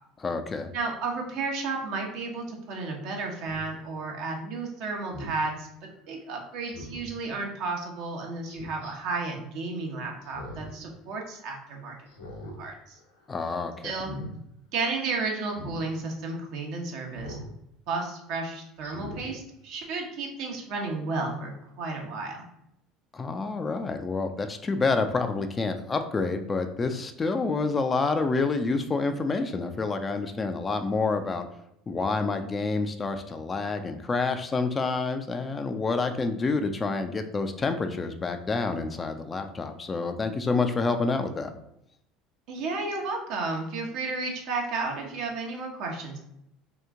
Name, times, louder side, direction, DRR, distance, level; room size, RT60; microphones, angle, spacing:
voice 1, 0.2-0.7 13.3-13.9 23.1-31.5 31.9-41.5, left 3 dB, 25° left, 7 dB, 0.4 m, -28 dB
voice 2, 0.7-5.7 6.1-12.0 12.6-13.0 13.8-14.1 14.7-17.4 17.9-22.4 42.5-46.2, right 3 dB, 60° right, 1 dB, 0.8 m, -32 dB
Speech synthesizer, 3.5-3.7 5.1-5.4 6.6-7.1 8.5-8.9 10.2-10.8 11.1-11.2 12.1-12.6 13.0-13.3 13.9-14.3 15.5-15.8 17.2-17.5 18.0-18.1 18.8-19.3 19.7-19.8, left 1 dB, 85° left, 1.0 m, -41 dB
2.9 x 2.4 x 3.5 m, 0.79 s
hypercardioid pair, 70°, 0 cm